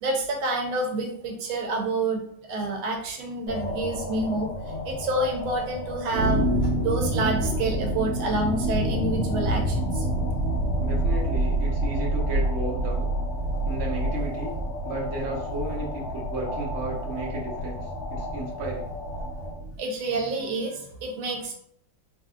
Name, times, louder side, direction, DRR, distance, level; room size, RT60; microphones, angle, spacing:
voice 1, 0.0-4.5 4.8-6.5 6.8-10.1 10.3-10.4 19.8-21.5, right 2 dB, 85° right, 1 dB, 1.4 m, -28 dB
sound 1, 3.5-19.5, left 2 dB, 70° left, 1.5 m, -36 dB
sound 2, 6.1-19.8, right 1 dB, 70° right, 1.4 m, -28 dB
voice 2, 10.8-13.1 13.6-14.5 14.8-17.8 18.1-18.9, right 2 dB, 50° right, -4 dB, 1.1 m, -33 dB
3.5 x 2.6 x 2.3 m, 0.65 s
omnidirectional pair, 2.1 m